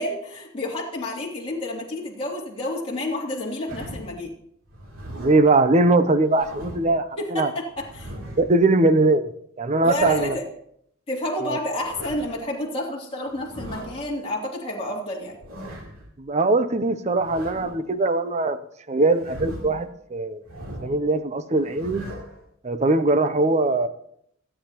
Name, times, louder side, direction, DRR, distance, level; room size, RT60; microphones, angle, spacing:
voice 1, 0.0-4.3 7.2-8.1 9.8-10.5 11.1-15.4, left 1 dB, 25° left, -4 dB, 2.9 m, -30 dB
sound 1, 3.7-4.2 4.7-5.5 6.1-7.0 7.7-8.6 9.6-10.4 11.6-12.4 13.3-14.0 15.2-16.1 17.1-18.0 19.0-19.9 20.4-21.0 21.5-22.4, equal, 90° right, 3.2 m, -39 dB
voice 2, 5.2-7.1 7.3-7.5 8.4-9.3 9.6-10.4 11.5-11.6 16.2-18.6 18.9-20.4 20.8-22.1 22.6-23.9, right 2 dB, 30° right, 12 dB, 0.6 m, -21 dB
26.0 x 8.9 x 3.0 m, 0.71 s
head